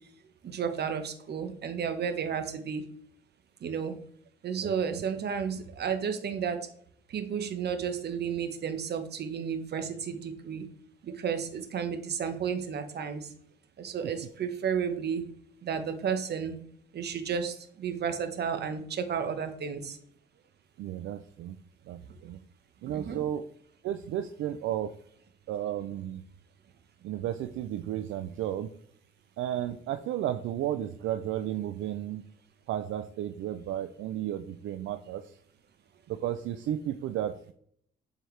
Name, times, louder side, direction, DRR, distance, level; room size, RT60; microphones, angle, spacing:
voice 1, 0.4-2.8 3.6-3.9 4.4-6.6 7.1-10.6 11.0-13.3 13.8-15.2 15.6-16.5 16.9-20.0 22.9-23.2, right 7 dB, 55° right, 8 dB, 1.1 m, -32 dB
voice 2, 4.6-5.0 20.8-21.6 21.9-22.4 22.8-23.4 23.8-24.9 25.5-26.2 27.0-28.7 29.4-32.2 32.7-35.4 36.1-37.5, right 11 dB, 80° right, 9 dB, 0.5 m, -33 dB
8.0 x 4.5 x 3.3 m, 0.64 s
cardioid pair, 90°, 20 cm